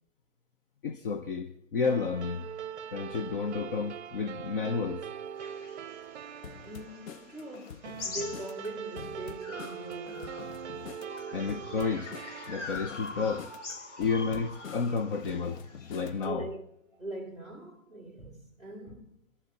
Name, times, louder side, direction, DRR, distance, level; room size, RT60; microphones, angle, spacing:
voice 1, 0.8-2.5 2.9-5.1 11.3-12.1 12.5-13.5 14.0-15.6 15.9-16.4, left 5 dB, 45° left, 0.9 m, -31 dB
sound 1, 1.8-14.6, right 8 dB, 60° right, 0.7 m, -42 dB
sound 2, 5.4-9.0 9.4-16.1, left 3 dB, 65° left, 3.2 m, -44 dB
sound 3, 6.4-16.4, left 7 dB, 85° left, 0.9 m, -47 dB
voice 2, 6.6-10.6 16.2-19.2, right 1 dB, 15° left, 2.1 m, -42 dB
28.0 x 11.5 x 4.1 m
hypercardioid pair, 165°, 39 cm